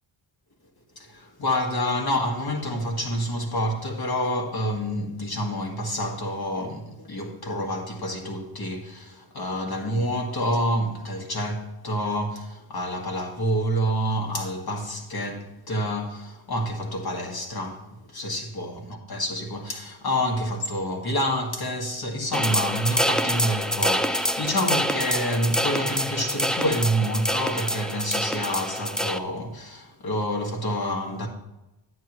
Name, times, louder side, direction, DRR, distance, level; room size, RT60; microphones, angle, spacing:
voice 1, 1.0-18.8 19.1-31.3, equal, 50° left, 1.9 m, -28 dB
sound 1, 22.3-29.2, equal, ahead, 0.3 m, -26 dB
10.5 x 9.3 x 3.1 m
wide cardioid pair, 105°, 47 cm